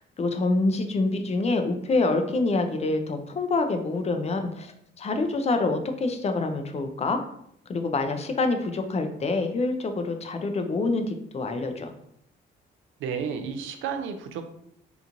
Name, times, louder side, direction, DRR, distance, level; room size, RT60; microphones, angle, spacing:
voice 1, 0.0-4.7 5.0-7.2 7.7-11.9, left 3 dB, 35° left, 6 dB, 0.4 m, -26 dB
voice 2, 13.0-14.4, right 6 dB, 80° right, 6 dB, 0.4 m, -32 dB
2.9 x 2.4 x 2.5 m, 0.72 s
cardioid pair, 90°, 20 cm